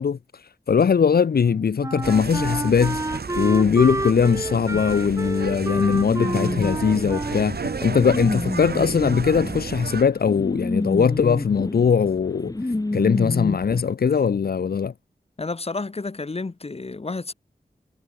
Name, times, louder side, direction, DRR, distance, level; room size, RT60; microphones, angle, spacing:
voice 1, 0.0-3.0 3.3-12.5 12.9-14.9, left 6 dB, 70° left, 0.7 m, -20 dB
Wind instrument woodwind instrument, 1.4-8.6, right 1 dB, 20° right, 1.6 m, -30 dB
sound 1, 2.0-10.0, right 5 dB, 75° right, 2.6 m, -33 dB
sound 2, 4.7-13.8, left 2 dB, 20° left, 1.3 m, -29 dB
voice 2, 15.4-17.3, left 3 dB, 40° left, 1.4 m, -30 dB
wide cardioid pair, 65°, 16 cm